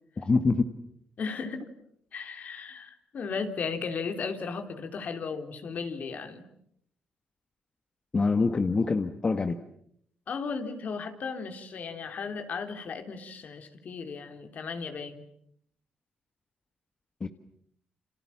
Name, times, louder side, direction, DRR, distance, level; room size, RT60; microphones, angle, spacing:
voice 1, 0.2-0.6 8.1-9.5 17.2-17.3, left 4 dB, 30° left, 8 dB, 1.6 m, -25 dB
voice 2, 1.2-1.7 2.1-6.5 10.3-15.2, left 5 dB, 60° left, 6 dB, 3.6 m, -35 dB
29.0 x 27.5 x 7.3 m, 0.70 s
cardioid pair, 90°, 3 cm